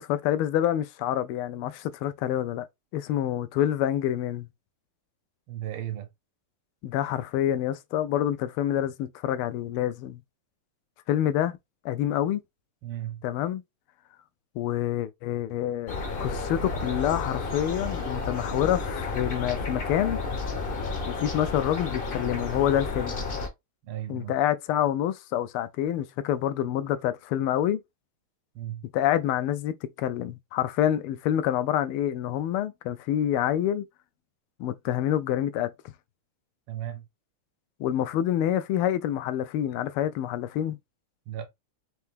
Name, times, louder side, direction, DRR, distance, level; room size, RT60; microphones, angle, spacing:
voice 1, 0.0-2.7 2.9-4.5 6.8-10.2 11.1-11.6 11.8-12.4 13.2-13.6 14.5-20.2 21.1-23.2 24.1-27.8 28.9-33.8 34.6-35.7 37.8-40.8, left 11 dB, 85° left, 1.5 m, -27 dB
voice 2, 5.5-6.1 12.8-13.2 23.8-24.4 28.5-28.8 36.7-37.1 41.3-41.5, right 12 dB, 80° right, 1.8 m, -35 dB
sound 1, 15.9-23.5, left 3 dB, 50° left, 0.6 m, -32 dB
4.4 x 2.7 x 3.5 m
omnidirectional pair, 2.4 m